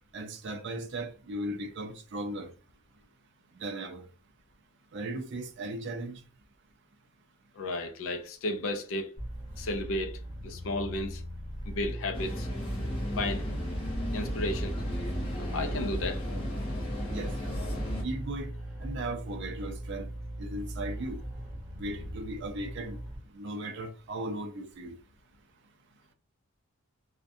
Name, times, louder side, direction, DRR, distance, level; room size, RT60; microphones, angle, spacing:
voice 1, 0.1-2.5 3.5-4.1 4.9-6.2 17.1-17.3 18.0-18.5 18.8-20.1 20.4-21.2 21.8-23.0 23.3-24.9, right 1 dB, 50° right, 0.4 m, -37 dB
voice 2, 7.6-9.1 9.6-11.2 11.7-12.5 13.2-13.5 14.1-14.8 15.4-16.2, left 1 dB, 60° left, 0.4 m, -33 dB
sound 1, 9.2-23.2, equal, 10° right, 1.0 m, -40 dB
sound 2, 12.1-18.0, equal, 25° left, 0.7 m, -34 dB
2.4 x 2.1 x 2.5 m
head